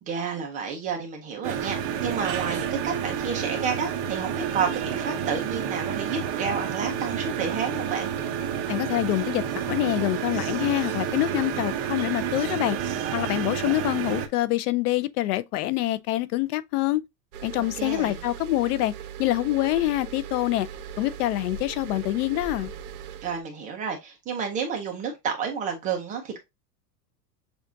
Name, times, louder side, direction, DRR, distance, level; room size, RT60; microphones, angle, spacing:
voice 1, 0.0-8.1 17.5-18.2 23.2-26.4, right 6 dB, 15° right, 0.5 m, -30 dB
sound 1, 1.4-14.3, right 8 dB, 45° right, 0.8 m, -30 dB
voice 2, 8.7-12.8 13.1-17.0 17.4-20.7 21.0-22.7, left 16 dB, 70° left, 0.6 m, -26 dB
sound 2, 17.3-23.4, right 8 dB, 65° right, 1.0 m, -39 dB
6.9 x 2.4 x 2.6 m
supercardioid pair, 170°, 47 cm